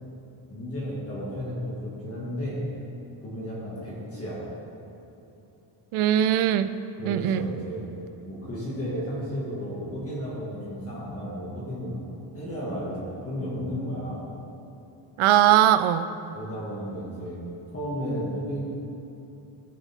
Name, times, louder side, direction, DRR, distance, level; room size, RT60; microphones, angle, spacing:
voice 1, 0.5-2.6 3.2-4.4 7.0-7.8 8.3-12.0 12.3-14.2 16.3-17.4 17.7-18.6, equal, 30° left, -7 dB, 2.2 m, -33 dB
voice 2, 5.9-6.7 7.0-7.5 15.2-16.1, right 11 dB, 90° right, 12 dB, 0.6 m, -20 dB
14.5 x 7.2 x 3.7 m, 2.9 s
cardioid pair, 165°, 48 cm